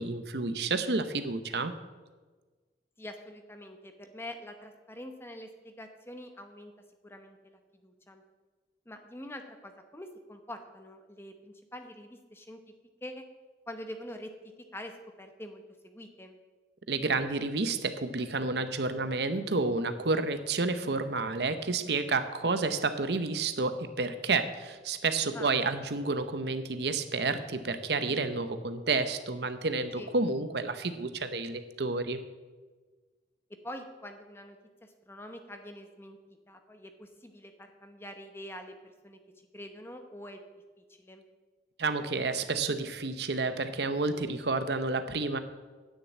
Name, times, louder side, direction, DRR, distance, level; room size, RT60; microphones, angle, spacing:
voice 1, 0.0-1.7 16.9-32.2 41.8-45.4, right 3 dB, 70° right, 10 dB, 0.8 m, -30 dB
voice 2, 3.0-6.7 7.0-8.2 8.9-12.6 13.0-13.2 13.7-14.3 14.7-16.4 25.3-25.5 30.0-30.1 33.6-36.2 36.5-39.2 39.5-40.4 40.8-41.2, left 1 dB, 15° left, 6 dB, 1.0 m, -45 dB
9.8 x 6.7 x 8.5 m, 1.3 s
head